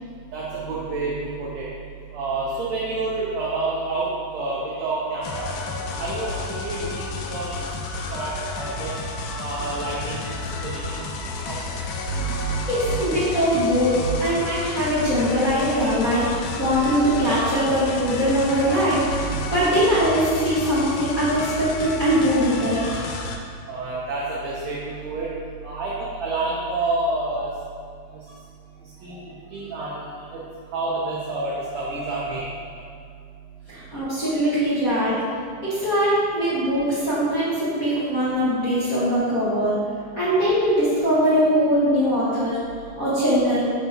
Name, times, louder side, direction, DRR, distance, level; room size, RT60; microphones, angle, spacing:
voice 1, 0.3-1.7 2.1-5.5 6.0-7.5 8.0-8.9 9.4-11.1 11.4-11.6 12.1-13.0 14.0-14.2 19.1-19.5 23.7-25.3 25.6-27.5 29.0-29.2 29.5-30.4 30.7-32.5, right 3 dB, 70° right, -6 dB, 1.7 m, -28 dB
sound 1, 5.2-23.4, left 3 dB, 80° left, 2.1 m, -31 dB
voice 2, 12.7-23.1 33.7-35.2 35.6-39.8 40.1-42.6 43.0-43.7, equal, 55° left, -12 dB, 0.9 m, -21 dB
10.5 x 4.2 x 2.9 m, 2.2 s
omnidirectional pair, 3.9 m